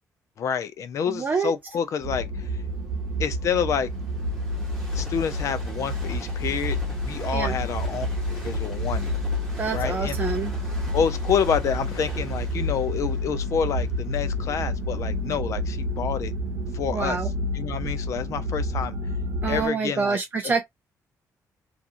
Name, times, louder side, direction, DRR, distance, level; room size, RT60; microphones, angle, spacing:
voice 1, 0.4-2.5 3.2-3.9 4.9-9.1 9.7-10.2 10.9-16.3 16.7-17.2 17.5-19.0 19.5-20.5, left 7 dB, 55° left, 0.4 m, -28 dB
voice 2, 1.1-1.5 7.3-7.6 9.6-10.5 16.9-17.3 19.4-20.6, right 5 dB, 25° right, 0.4 m, -26 dB
Train, 1.2-17.1 17.7-17.8, right 1 dB, 5° left, 1.2 m, -46 dB
sound 1, 2.0-19.7, left 1 dB, 75° right, 0.8 m, -29 dB
2.8 x 2.4 x 2.5 m
cardioid pair, 145°, 6 cm